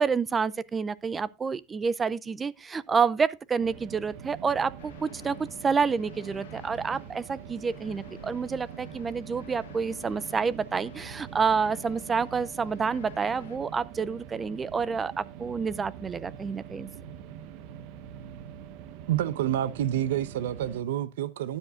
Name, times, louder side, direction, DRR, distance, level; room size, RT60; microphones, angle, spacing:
voice 1, 0.0-5.4 5.6-16.9, right 5 dB, 20° right, 0.5 m, -28 dB
sound 1, 3.6-20.8, right 9 dB, 60° right, 1.0 m, -44 dB
sound 2, 4.8-13.6, left 10 dB, 90° left, 1.2 m, -51 dB
voice 2, 19.1-21.6, right 12 dB, 80° right, 0.8 m, -28 dB
12.5 x 9.9 x 2.4 m
supercardioid pair, 130°, 0 cm